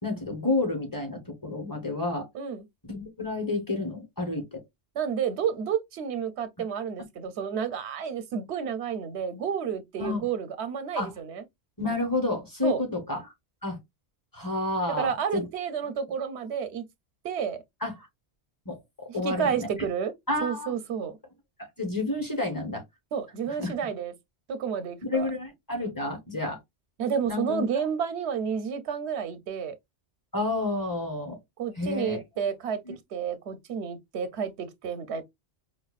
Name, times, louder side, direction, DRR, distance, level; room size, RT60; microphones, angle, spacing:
voice 1, 0.0-2.3 2.8-4.6 10.0-10.2 11.0-11.1 11.8-13.3 13.6-13.8 14.3-15.5 17.8-17.9 18.7-19.7 20.3-20.7 21.6-22.8 23.5-23.7 25.1-26.6 27.3-27.6 30.3-31.4 31.8-32.2 32.9-33.0, left 2 dB, 20° left, 1.0 m, -30 dB
voice 2, 2.3-2.6 4.9-11.4 12.6-12.8 15.0-16.8 17.2-17.6 19.2-20.1 20.4-21.1 23.1-24.1 24.5-25.3 27.0-29.7 31.6-32.8 33.1-35.2, right 7 dB, 85° right, 0.9 m, -30 dB
4.9 x 2.3 x 2.3 m
omnidirectional pair, 1.1 m